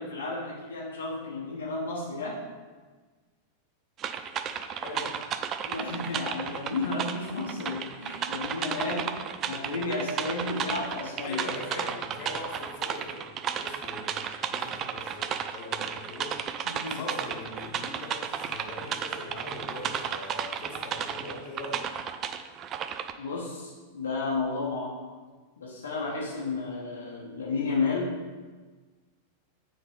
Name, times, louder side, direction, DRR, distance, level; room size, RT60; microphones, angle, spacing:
voice 1, 0.0-2.4 5.6-9.1 9.5-11.4 16.6-17.0 23.2-24.9 25.6-28.1, left 3 dB, 65° left, -5 dB, 1.2 m, -32 dB
sound 1, 4.0-23.1, right 8 dB, 30° right, 0.3 m, -34 dB
voice 2, 4.8-5.2 11.2-16.4 16.9-21.9, left 2 dB, 40° left, -2 dB, 1.4 m, -41 dB
9.6 x 3.6 x 3.4 m, 1.4 s
figure-of-eight pair, 90°, 0 cm